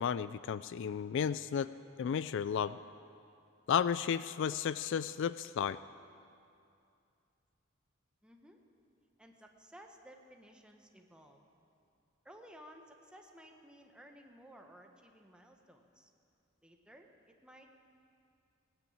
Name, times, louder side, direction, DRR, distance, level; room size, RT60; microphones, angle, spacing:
voice 1, 0.0-1.7 2.0-2.8 3.7-5.8, left 7 dB, 60° left, 15 dB, 0.3 m, -33 dB
voice 2, 8.2-8.6 9.2-11.4 12.2-16.1 16.6-17.7, equal, 5° right, 2 dB, 1.2 m, -57 dB
18.0 x 9.2 x 8.6 m, 2.5 s
head